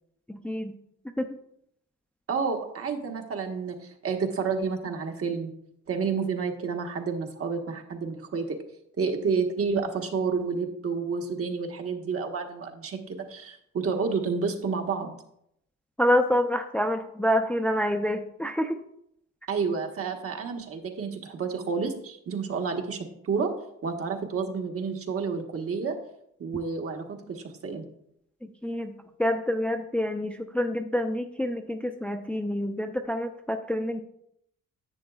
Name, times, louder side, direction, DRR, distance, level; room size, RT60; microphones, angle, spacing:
voice 1, 0.3-0.7 1.2-1.3 16.0-18.8 28.4-28.9 29.2-34.0, left 1 dB, 5° left, 5 dB, 0.5 m, -27 dB
voice 2, 2.3-5.5 5.9-8.6 9.0-15.1 19.5-23.0 23.2-23.5 23.8-26.0 26.4-27.8, right 5 dB, 50° right, 3 dB, 1.3 m, -30 dB
10.5 x 7.5 x 2.4 m, 0.75 s
cardioid pair, 90°, 30 cm